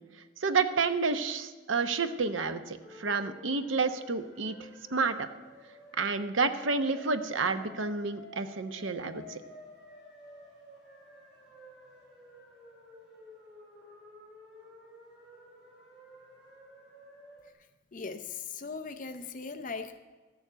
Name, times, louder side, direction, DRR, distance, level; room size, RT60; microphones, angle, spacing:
voice 1, 0.4-4.6 4.9-5.3 6.0-9.4, right 4 dB, 85° right, 9 dB, 0.9 m, -30 dB
sound 1, 2.8-17.5, left 1 dB, 5° right, 4.4 m, -52 dB
voice 2, 17.9-20.0, left 4 dB, 45° left, 8 dB, 0.6 m, -39 dB
13.0 x 7.1 x 7.9 m, 1.3 s
head